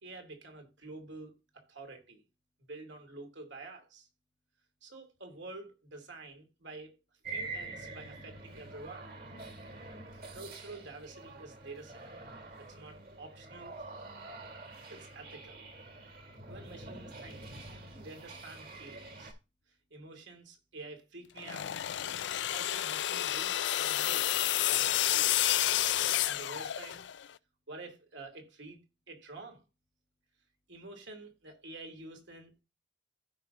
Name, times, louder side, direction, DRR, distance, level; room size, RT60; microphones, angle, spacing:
voice 1, 0.0-2.2 2.7-4.1 4.8-7.0 7.3-9.1 10.3-12.1 12.6-13.8 14.9-15.6 16.5-17.4 18.0-19.3 19.9-21.7 22.5-24.3 24.6-25.5 26.2-27.1 27.7-28.8 29.1-29.6 30.7-32.6, right 3 dB, 75° right, 2.4 m, -48 dB
sound 1, 7.2-19.3, right 3 dB, 50° right, 2.0 m, -46 dB
sound 2, 21.4-27.2, left 13 dB, 70° left, 0.4 m, -30 dB
15.5 x 5.4 x 2.5 m
head